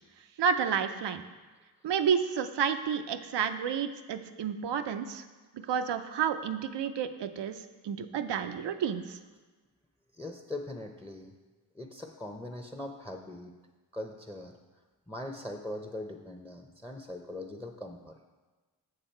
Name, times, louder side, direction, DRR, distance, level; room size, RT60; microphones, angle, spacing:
voice 1, 0.4-1.2 1.8-5.2 5.5-7.6 7.8-9.2, right 7 dB, 90° right, 8 dB, 0.6 m, -30 dB
voice 2, 10.2-11.3 11.7-13.6 13.9-14.5 15.1-18.1, left 1 dB, 5° left, 3 dB, 0.7 m, -41 dB
6.9 x 6.8 x 4.4 m, 1.3 s
cardioid pair, 45°, 41 cm